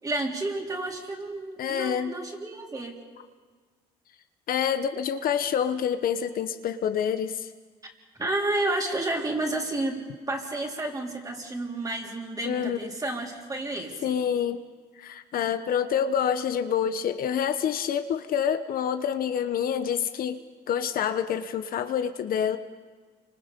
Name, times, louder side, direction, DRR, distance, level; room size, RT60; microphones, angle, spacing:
voice 1, 0.0-3.0 8.2-10.0 10.3-14.2, right 2 dB, 20° right, 0 dB, 4.0 m, -31 dB
voice 2, 1.6-2.1 4.5-7.5 12.4-12.8 14.0-14.6 15.0-20.4 20.7-22.6, left 8 dB, 60° left, 9 dB, 1.0 m, -27 dB
29.0 x 25.0 x 5.3 m, 1.5 s
cardioid pair, 110°, 17 cm